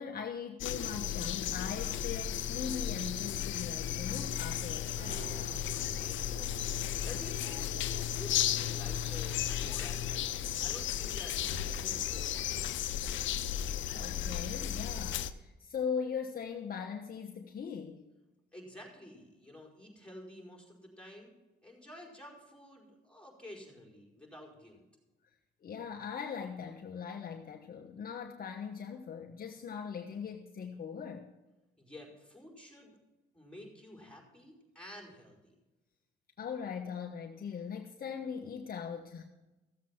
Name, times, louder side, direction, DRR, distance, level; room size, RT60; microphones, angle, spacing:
voice 1, 0.0-5.0 13.9-18.0 25.6-31.3 36.4-39.2, left 6 dB, 50° left, 2 dB, 1.2 m, -40 dB
sound 1, 0.6-15.3, left 11 dB, 75° left, 0.7 m, -34 dB
sound 2, 5.0-12.0, right 1 dB, 80° right, 4.9 m, -52 dB
voice 2, 5.3-7.8 8.1-12.8 18.5-21.4 21.6-24.8 31.8-33.0 33.3-35.5, left 1 dB, 5° left, 0 dB, 4.9 m, -51 dB
15.0 x 7.5 x 5.8 m, 1.1 s
cardioid pair, 90°, 20 cm